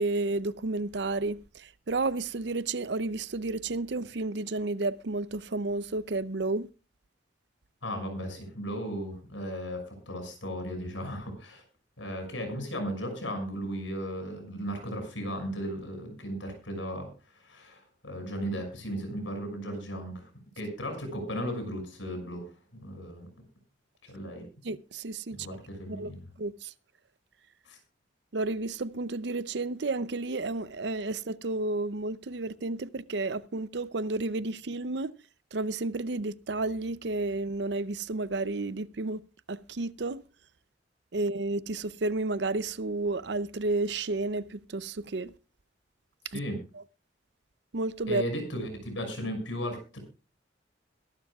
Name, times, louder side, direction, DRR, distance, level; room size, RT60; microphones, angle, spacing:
voice 1, 0.0-6.7 24.6-25.5 25.9-26.1 26.4-26.7 28.3-35.1 35.5-39.2 39.5-40.2 41.1-45.3 46.3-46.4 47.7-48.2, right 2 dB, 65° right, 0.6 m, -31 dB
voice 2, 7.8-11.6 12.0-17.1 17.4-20.3 20.6-22.5 22.8-23.3 24.0-24.5 25.3-26.2 27.7-27.8 46.3-46.6 48.1-50.0, equal, 85° left, 6.3 m, -36 dB
22.5 x 12.0 x 2.4 m
head